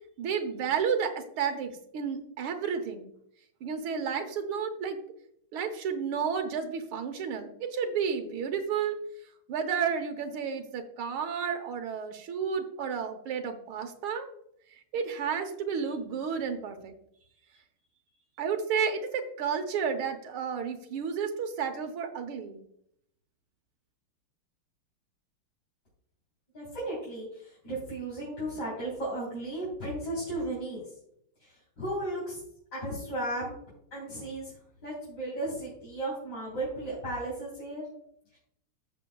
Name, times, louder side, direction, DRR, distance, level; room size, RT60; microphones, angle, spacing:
voice 1, 0.2-3.1 3.6-5.0 5.5-9.0 9.5-14.3 14.9-16.9 18.4-22.6, right 6 dB, 75° right, 6 dB, 1.8 m, -31 dB
voice 2, 26.5-30.8 31.4-32.4 32.7-33.5 33.9-34.5 34.8-37.8, right 1 dB, 50° left, -7 dB, 4.2 m, -35 dB
15.0 x 6.3 x 2.3 m, 0.72 s
omnidirectional pair, 2.4 m